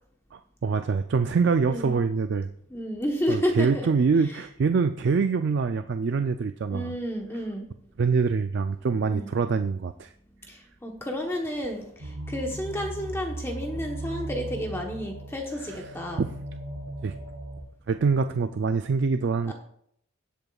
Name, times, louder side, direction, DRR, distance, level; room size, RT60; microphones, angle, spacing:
voice 1, 0.3-2.5 3.3-6.9 8.0-10.1 15.7-15.8 16.2-16.4 17.0-17.1 17.9-19.5, right 5 dB, 55° right, 9 dB, 0.4 m, -25 dB
voice 2, 1.6-1.9 2.7-3.9 4.3-4.4 6.7-7.7 9.0-9.3 10.5-16.2 19.4-19.5, equal, 10° left, 1 dB, 1.0 m, -31 dB
sound 1, 12.0-17.6, right 1 dB, 70° right, 3.2 m, -37 dB
18.0 x 8.0 x 2.4 m, 0.69 s
head